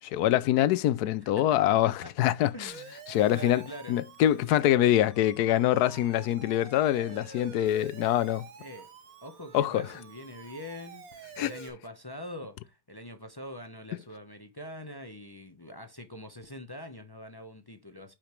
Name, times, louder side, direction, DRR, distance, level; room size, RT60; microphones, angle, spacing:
voice 1, 0.0-2.7 3.1-3.6 3.9-8.5 9.5-9.9 11.4-11.5, left 12 dB, 70° left, 1.0 m, -25 dB
voice 2, 1.2-2.1 2.5-2.9 3.3-4.0 8.6-8.9 9.2-18.1, equal, 30° left, 0.4 m, -44 dB
Siren, 2.7-11.7, right 7 dB, 55° right, 1.3 m, -49 dB
8.8 x 5.1 x 3.1 m
omnidirectional pair, 1.9 m